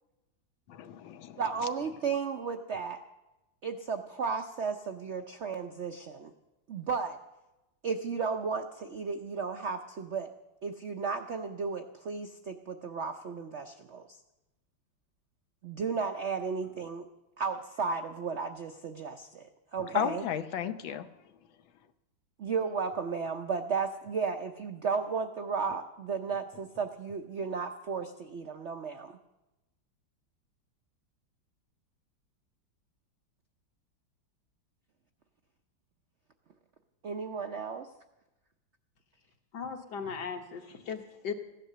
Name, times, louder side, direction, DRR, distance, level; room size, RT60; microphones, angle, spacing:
voice 1, 0.7-1.4 19.8-21.1, left 9 dB, 90° left, 11 dB, 1.6 m, -34 dB
voice 2, 1.4-3.0 3.6-6.3 6.7-7.2 7.8-10.3 10.6-14.2 15.6-17.1 17.4-20.3 22.4-29.2 37.0-37.9, right 5 dB, 75° right, 6 dB, 0.6 m, -34 dB
voice 3, 39.5-41.3, left 6 dB, 65° left, 4 dB, 1.8 m, -37 dB
15.5 x 10.5 x 6.7 m, 0.99 s
omnidirectional pair, 2.1 m